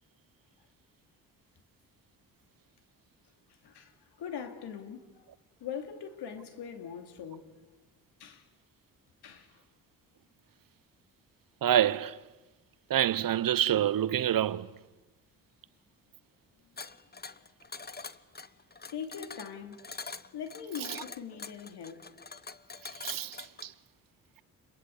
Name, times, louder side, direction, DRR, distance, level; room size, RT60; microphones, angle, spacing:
voice 1, 3.6-5.3 5.6-7.5 8.2-8.5 9.2-9.6 18.9-19.8 20.3-22.1, left 7 dB, 75° left, 2.9 m, -41 dB
voice 2, 11.6-12.2 12.9-14.7 23.0-23.7, right 11 dB, 55° right, 0.9 m, -27 dB
sound 1, 16.8-23.7, left 4 dB, 25° left, 1.1 m, -44 dB
29.5 x 22.0 x 8.2 m
supercardioid pair, 55°, 40 cm